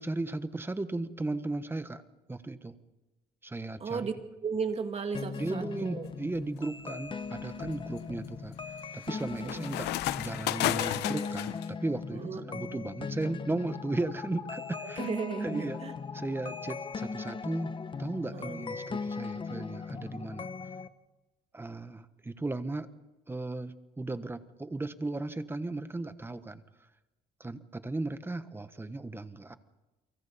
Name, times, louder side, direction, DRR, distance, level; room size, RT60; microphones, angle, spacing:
voice 1, 0.0-2.0 2.3-2.8 3.4-4.1 5.4-8.5 8.9-15.1 15.4-15.8 16.1-17.7 18.0-20.5 21.5-22.9 23.3-26.6 27.4-29.6, right 2 dB, 15° right, 11 dB, 1.3 m, -36 dB
voice 2, 3.8-4.1 4.4-6.1 9.4-9.6 12.1-12.6 15.0-15.9 18.3-18.6, right 5 dB, 35° right, 5 dB, 2.5 m, -35 dB
sound 1, 5.1-20.9, left 5 dB, 30° left, 1.1 m, -39 dB
sound 2, 6.1-6.5 7.0-11.7, left 15 dB, 85° left, 0.8 m, -34 dB
30.0 x 24.0 x 4.3 m, 1.1 s
cardioid pair, 110°, 17 cm